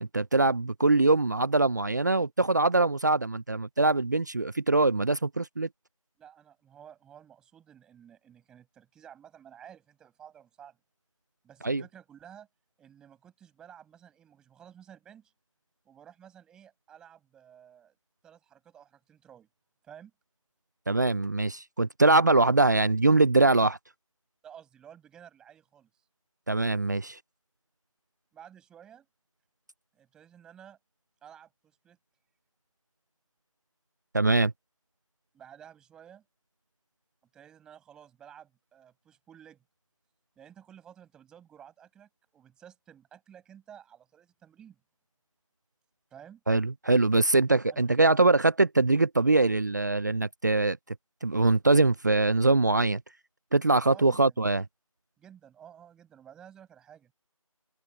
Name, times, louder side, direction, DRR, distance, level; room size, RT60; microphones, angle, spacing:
voice 1, 0.0-5.7 11.6-11.8 20.9-23.8 26.5-27.2 34.1-34.5 46.5-50.8 51.2-53.0 53.5-54.6, right 2 dB, 30° right, 0.7 m, -23 dB
voice 2, 6.2-10.8 11.4-12.5 12.8-15.3 15.8-18.0 18.2-19.5 19.8-20.1 24.4-25.9 28.3-29.1 29.9-30.8 31.2-32.0 35.3-36.2 37.3-39.6 40.4-44.8 46.1-46.4 47.7-47.8 53.8-54.4 55.2-57.1, right 9 dB, 5° right, 7.1 m, -53 dB
open air
figure-of-eight pair, 170°, 18 cm